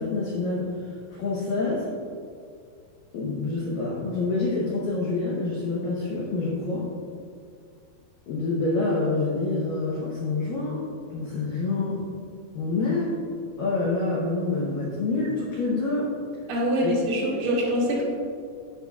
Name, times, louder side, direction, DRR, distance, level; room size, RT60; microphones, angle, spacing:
voice 1, 0.0-1.9 3.1-6.8 8.3-10.8 11.1-12.0 12.6-13.1 13.6-16.1 16.8-16.9, left 3 dB, 75° left, -5 dB, 2.0 m, -27 dB
voice 2, 16.5-18.1, equal, 80° right, -5 dB, 4.2 m, -24 dB
15.5 x 5.6 x 2.4 m, 2.2 s
omnidirectional pair, 5.3 m